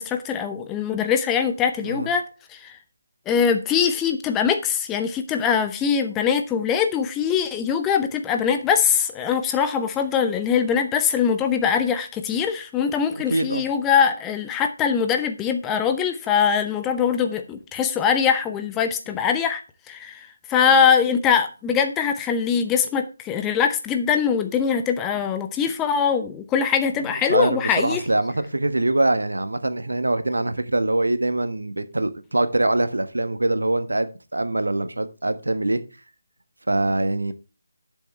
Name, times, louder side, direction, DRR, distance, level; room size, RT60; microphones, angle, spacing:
voice 1, 0.0-2.2 2.5-2.7 3.3-19.6 19.9-28.0, left 7 dB, 10° left, 0.7 m, -22 dB
voice 2, 13.1-13.6 27.3-35.8 36.7-37.3, right 2 dB, 70° right, 1.5 m, -23 dB
12.0 x 7.2 x 3.3 m
figure-of-eight pair, 155°, 0 cm